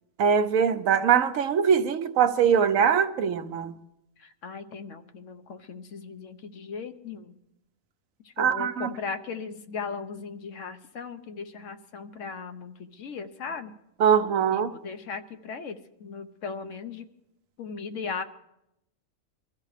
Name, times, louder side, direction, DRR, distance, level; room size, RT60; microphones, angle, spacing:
voice 1, 0.2-3.7 8.4-8.9 14.0-14.7, right 7 dB, 80° right, 1.1 m, -22 dB
voice 2, 4.2-7.4 8.4-13.7 14.5-17.1 17.6-18.2, left 5 dB, 70° left, 1.2 m, -37 dB
24.0 x 14.0 x 3.3 m
omnidirectional pair, 1.4 m